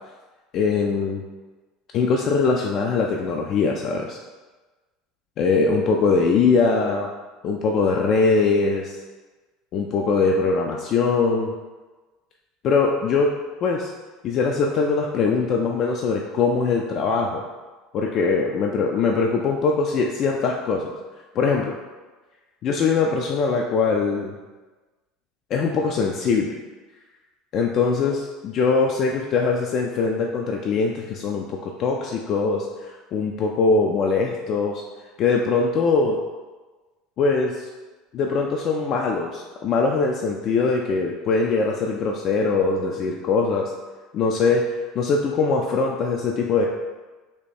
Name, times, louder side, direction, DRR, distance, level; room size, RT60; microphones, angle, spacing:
voice 1, 0.5-1.2 1.9-4.2 5.4-7.1 7.4-9.0 9.7-11.5 12.6-13.3 13.6-13.9 14.2-17.4 17.9-20.9 21.3-21.8 22.6-24.4 25.5-26.5 27.5-34.8 35.2-36.2 37.2-37.7 38.1-43.7 44.1-44.6 44.9-46.7, left 4 dB, 50° left, 0 dB, 0.4 m, -22 dB
3.5 x 2.9 x 4.1 m, 1.3 s
figure-of-eight pair, 70°, 0 cm